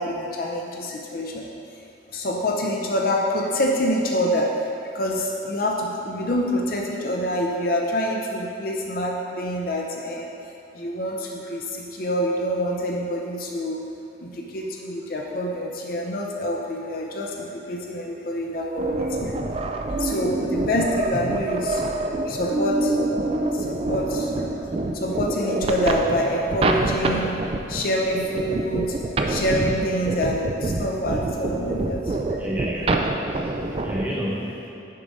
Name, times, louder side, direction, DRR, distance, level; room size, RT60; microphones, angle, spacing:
voice 1, 0.0-1.5 2.1-4.5 4.9-10.3 10.7-13.8 14.2-19.3 19.9-21.8 22.3-23.0 23.5-24.3 24.9-27.4 27.7-29.0 29.3-32.2, equal, 50° left, -1 dB, 0.5 m, -26 dB
sound 1, 18.8-34.1, right 2 dB, 30° right, 0.3 m, -26 dB
voice 2, 32.4-34.7, equal, 10° right, -6 dB, 1.0 m, -31 dB
6.5 x 5.0 x 4.0 m, 2.7 s
head